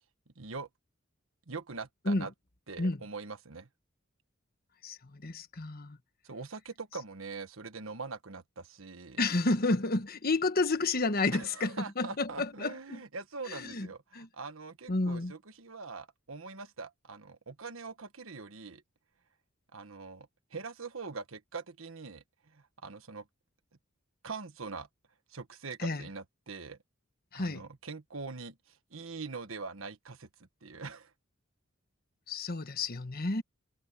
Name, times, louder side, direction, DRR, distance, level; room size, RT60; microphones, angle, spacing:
voice 1, 0.4-0.7 1.5-2.3 2.7-3.7 6.2-9.2 11.3-18.8 19.7-23.3 24.2-24.9 25.3-26.8 27.3-30.3 30.6-31.1, right 4 dB, 85° right, 1.4 m, -43 dB
voice 2, 4.8-6.0 9.2-13.0 13.5-13.9 14.1-14.3 14.9-15.3 25.8-26.0 27.3-27.6 32.3-33.4, left 2 dB, 50° left, 1.3 m, -31 dB
head